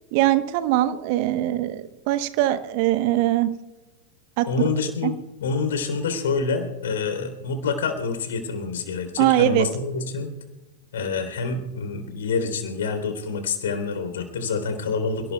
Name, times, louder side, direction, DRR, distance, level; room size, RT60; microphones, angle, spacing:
voice 1, 0.1-3.5 4.4-4.5 5.0-5.1 9.2-9.7, right 14 dB, 45° right, 12 dB, 1.0 m, -21 dB
voice 2, 4.5-10.3 10.9-15.3, left 4 dB, 60° left, 7 dB, 3.5 m, -27 dB
28.5 x 19.0 x 2.3 m, 1.1 s
figure-of-eight pair, 90°, 0 cm